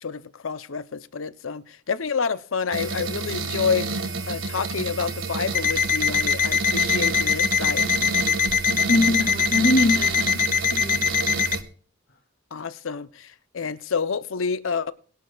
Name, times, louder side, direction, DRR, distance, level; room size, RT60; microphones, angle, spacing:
voice 1, 0.0-3.9 4.3-7.9 12.5-14.9, left 5 dB, 90° left, 0.7 m, -28 dB
sound 1, 2.7-11.6, right 4 dB, 80° right, 1.7 m, -30 dB
Alarm, 5.5-11.6, left 7 dB, 40° left, 0.6 m, -23 dB
voice 2, 8.7-11.0, left 1 dB, 60° left, 2.6 m, -23 dB
22.0 x 11.5 x 2.4 m
head